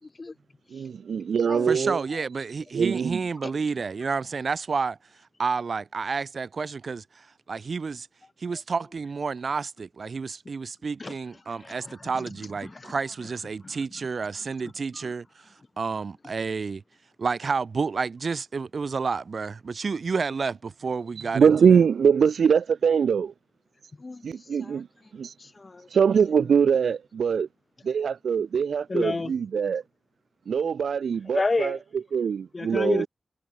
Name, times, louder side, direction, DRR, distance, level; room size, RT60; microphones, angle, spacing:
voice 1, 0.0-0.3 0.7-0.8 1.5-2.3 11.0-11.1 11.5-12.3 12.6-12.9 13.6-13.8 14.9-15.1 24.0-24.8 25.4-25.9 28.9-29.3 31.3-31.8 32.5-33.1, left 3 dB, 30° left, 2.2 m, -31 dB
voice 2, 0.7-2.1 2.7-3.2 21.2-23.3 24.2-24.9 25.1-25.3 25.9-27.5 27.8-29.8 30.5-33.1, right 6 dB, 80° right, 1.5 m, -23 dB
voice 3, 1.7-5.0 5.4-8.1 8.4-16.8 17.2-21.5, right 5 dB, 50° right, 4.6 m, -30 dB
wide cardioid pair, 135°, 0 cm